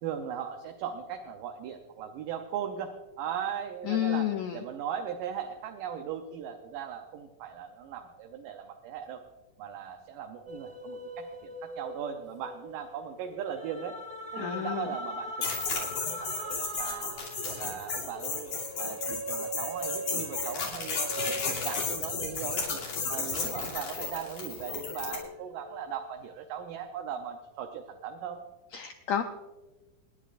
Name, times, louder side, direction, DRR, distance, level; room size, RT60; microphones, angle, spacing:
voice 1, 0.0-9.2 9.6-14.0 14.3-17.1 17.4-18.5 18.8-22.8 23.1-28.4, right 8 dB, 75° right, 4 dB, 2.4 m, -38 dB
voice 2, 3.9-4.6 14.4-14.9 28.7-29.2, left 10 dB, 90° left, 6 dB, 1.5 m, -30 dB
sound 1, 10.5-24.2 24.6-26.3, right 1 dB, 20° right, 2.0 m, -41 dB
sound 2, 15.4-25.2, left 4 dB, 70° left, 4.4 m, -33 dB
28.0 x 10.5 x 2.5 m, 1.1 s
omnidirectional pair, 4.0 m